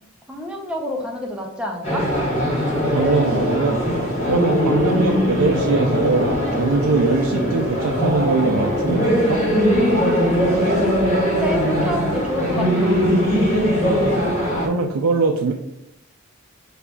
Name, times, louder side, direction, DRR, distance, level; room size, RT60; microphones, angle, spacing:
voice 1, 0.3-2.0 4.9-5.2 11.3-13.0, left 1 dB, 5° right, 0 dB, 0.5 m, -28 dB
sound 1, 1.8-14.7, equal, 30° left, 1.2 m, -20 dB
voice 2, 2.9-3.8 4.2-9.4 14.6-15.5, right 4 dB, 85° right, 1 dB, 0.4 m, -22 dB
6.5 x 2.4 x 2.3 m, 0.83 s
head